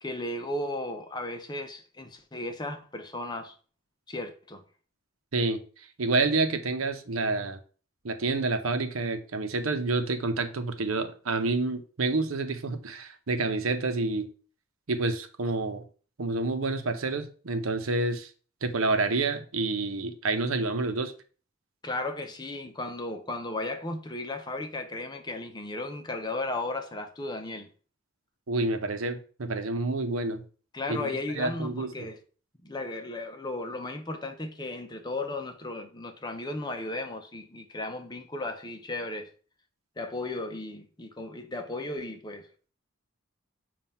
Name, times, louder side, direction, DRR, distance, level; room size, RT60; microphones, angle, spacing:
voice 1, 0.0-3.5 4.1-4.6 21.8-27.7 30.7-32.2 32.6-39.3 40.0-42.5, left 2 dB, 20° left, 0.6 m, -35 dB
voice 2, 6.0-7.6 8.0-14.3 14.9-15.8 16.2-18.3 18.6-21.1 28.5-30.4 30.9-32.1, right 3 dB, 90° right, 0.8 m, -28 dB
7.4 x 2.5 x 5.5 m
head